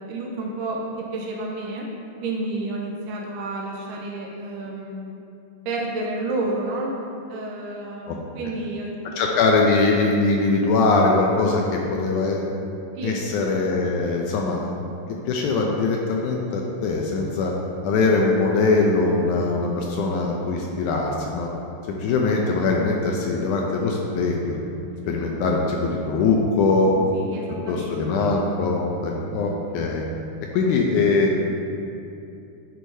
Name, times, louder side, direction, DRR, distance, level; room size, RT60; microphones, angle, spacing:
voice 1, 0.0-1.9 2.2-5.0 5.7-6.9 7.3-9.1 13.0-13.3 25.0-25.1 27.1-28.3, right 2 dB, 85° right, -2 dB, 2.2 m, -30 dB
voice 2, 9.2-12.4 13.0-14.8 15.3-17.5 17.8-21.5 22.0-24.6 25.1-26.9 27.7-30.0 30.5-31.4, left 3 dB, 80° left, -1 dB, 1.9 m, -22 dB
10.0 x 4.6 x 2.7 m, 2.6 s
omnidirectional pair, 3.8 m